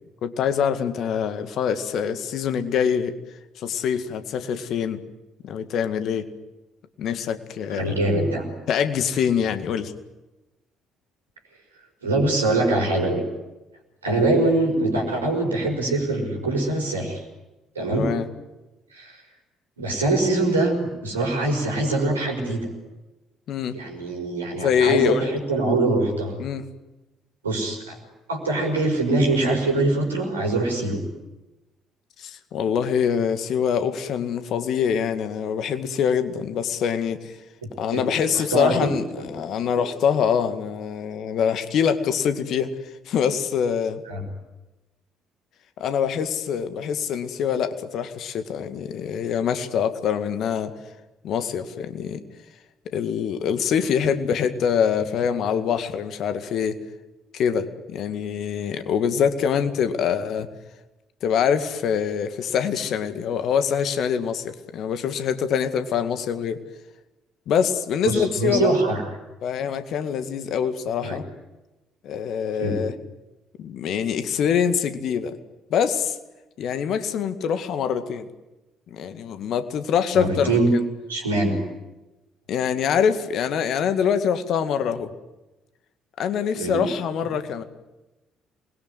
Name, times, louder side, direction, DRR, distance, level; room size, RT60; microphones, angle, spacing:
voice 1, 0.2-3.1 3.6-5.0 5.4-6.3 7.0-8.0 8.7-9.9 17.9-18.3 23.5-23.8 24.5-25.3 26.4-26.7 32.2-37.4 37.8-42.7 43.1-44.0 45.8-50.7 51.2-52.2 52.9-56.8 57.3-60.5 61.2-66.6 67.5-68.8 69.4-71.2 72.0-72.9 73.6-75.4 75.7-76.2 76.6-78.3 78.9-80.8 82.5-85.1 86.2-87.6, left 7 dB, 55° left, 10 dB, 2.1 m, -24 dB
voice 2, 7.7-8.5 12.0-13.2 14.0-17.2 17.8-18.1 18.9-19.2 19.8-22.7 23.7-26.4 27.4-28.0 28.3-31.0 37.9-38.0 38.3-38.9 39.2-39.3 39.6-39.8 44.1-44.2 68.0-69.0 71.0-71.2 72.6-72.8 80.1-80.7 81.1-81.6 86.5-86.8, right 2 dB, 85° right, 2 dB, 5.3 m, -23 dB
27.5 x 21.5 x 9.7 m, 1.1 s
figure-of-eight pair, 50°, 0 cm